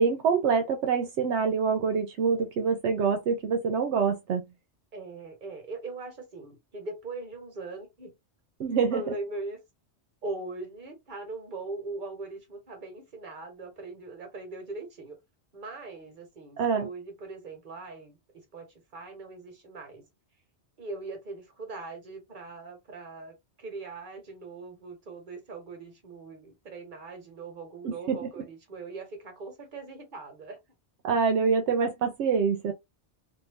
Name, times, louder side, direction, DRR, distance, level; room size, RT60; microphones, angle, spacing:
voice 1, 0.0-4.5 8.6-9.0 16.6-16.9 27.8-28.3 31.0-32.7, right 5 dB, 80° right, 0.9 m, -25 dB
voice 2, 4.9-8.1 8.9-9.6 10.2-15.2 15.5-18.2 18.5-20.0 20.8-30.6, right 3 dB, 45° right, 1.2 m, -40 dB
2.6 x 2.4 x 3.3 m
omnidirectional pair, 1.2 m